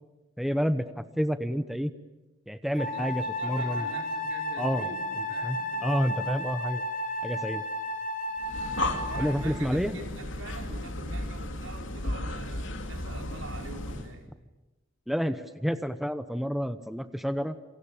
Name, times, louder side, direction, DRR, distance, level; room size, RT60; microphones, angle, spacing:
voice 1, 0.4-1.9 2.5-3.9 4.6-4.9 5.4-6.8 7.2-7.6 9.1-10.0 15.1-17.6, equal, ahead, 10 dB, 0.9 m, -29 dB
Wind instrument woodwind instrument, 2.8-9.5, left 1 dB, 40° left, 4.4 m, -33 dB
voice 2, 2.8-6.4 8.9-14.3, right 1 dB, 80° right, 3 dB, 5.0 m, -44 dB
Breathing, 8.4-14.2, left 1 dB, 70° left, 3.0 m, -34 dB
28.0 x 24.0 x 8.8 m, 1.0 s
head